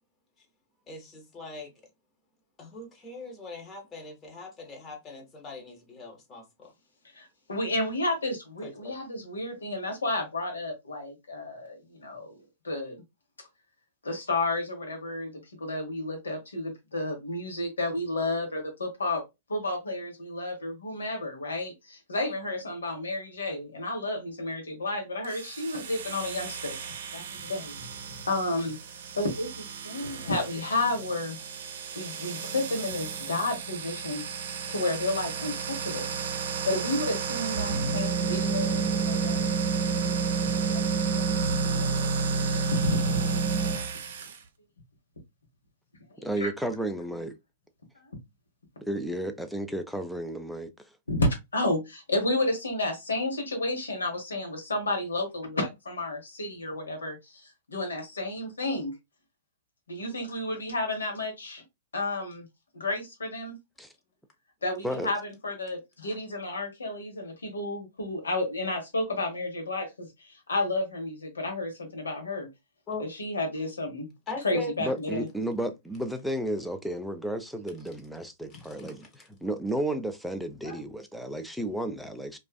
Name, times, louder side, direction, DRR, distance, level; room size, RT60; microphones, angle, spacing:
voice 1, 0.9-1.7 2.6-6.7 8.6-8.9 72.9-73.0 74.3-74.7 80.6-80.8, left 3 dB, 25° left, 1.0 m, -40 dB
voice 2, 7.1-12.4 12.6-13.0 14.0-19.2 19.5-26.8 27.1-27.7 28.3-28.8 29.1-31.4 31.9-36.1 36.6-40.1 40.7-41.4 41.7-43.3 46.1-46.5 48.0-48.1 51.1-59.0 59.9-61.6 61.9-62.5 62.7-63.6 64.6-65.2 65.4-72.5 73.0-74.1 74.4-75.3, left 2 dB, 90° left, 1.0 m, -31 dB
sound 1, 25.2-44.4, right 5 dB, 70° right, 0.5 m, -31 dB
voice 3, 46.2-47.3 48.9-50.7 63.8-63.9 64.8-65.1 74.5-82.4, right 1 dB, ahead, 0.4 m, -33 dB
2.4 x 2.4 x 2.2 m
hypercardioid pair, 115°, 0 cm